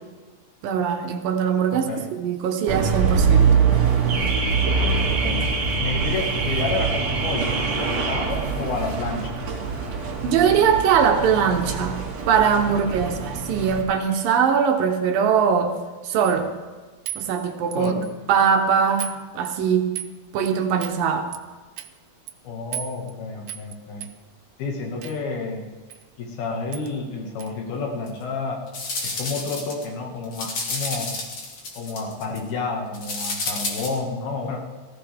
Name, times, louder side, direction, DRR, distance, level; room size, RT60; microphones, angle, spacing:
voice 1, 0.6-3.5 10.2-15.7 16.0-16.5 17.2-17.9 18.3-19.9 20.3-21.3, right 7 dB, 75° right, 5 dB, 2.7 m, -21 dB
voice 2, 1.7-2.1 5.1-5.5 5.8-9.4 12.7-13.1 17.8-18.1 22.4-24.1 24.6-25.6 26.2-28.6 29.0-31.1 31.8-34.6, left 4 dB, 85° left, 1 dB, 3.8 m, -30 dB
Car / Alarm, 2.7-13.8, right 5 dB, 50° right, 2.5 m, -23 dB
sound 1, 16.2-16.5 17.1-18.1 18.4-18.6 19.0-19.2 19.5-20.1 20.5-20.6 20.8-21.0 21.3-21.4 21.8-21.9 22.3-22.4 22.7-23.1 23.5-23.8 24.0-24.1 25.0-25.2 25.9-26.0 26.3-26.4 26.7-26.9 27.4-27.5, right 13 dB, 90° right, 2.6 m, -35 dB
sound 2, 28.1-28.2 28.7-29.8 30.2-32.4 32.9-33.9, left 3 dB, 45° left, 3.1 m, -30 dB
18.5 x 15.5 x 3.5 m, 1.3 s
omnidirectional pair, 4.3 m